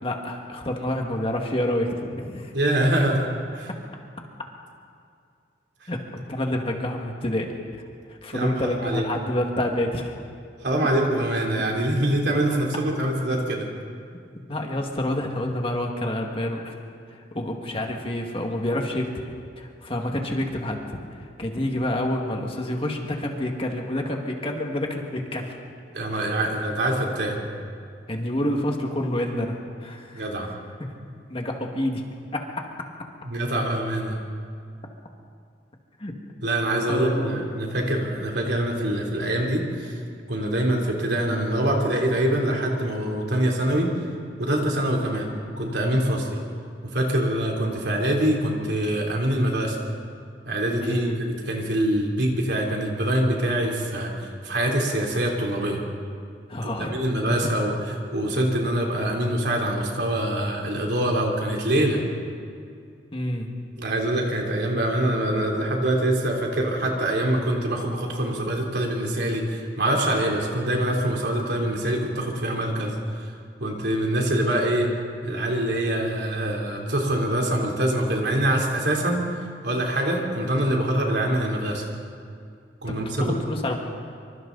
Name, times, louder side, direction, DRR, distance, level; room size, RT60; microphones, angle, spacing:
voice 1, 0.0-2.5 5.9-6.0 6.3-7.8 8.1-10.1 14.5-16.8 17.1-19.1 19.6-25.6 26.1-26.3 28.1-30.3 31.3-32.0 32.3-32.4 36.0-36.1 36.9-37.4 50.8-51.2 56.5-57.3 63.1-63.6 83.2-83.8, left 1 dB, 30° left, 2 dB, 2.0 m, -28 dB
voice 2, 2.5-3.3 3.5-3.7 5.8-5.9 8.3-9.0 10.6-13.7 25.9-27.4 30.1-30.5 33.2-34.2 36.4-40.0 40.3-43.9 44.4-45.3 45.6-46.4 46.8-49.8 50.5-55.8 56.8-57.7 58.1-62.0 63.8-73.3 73.6-74.9 75.2-81.9 82.8-83.4, right 1 dB, 65° right, 0 dB, 3.5 m, -24 dB
26.0 x 25.0 x 4.1 m, 2.3 s
head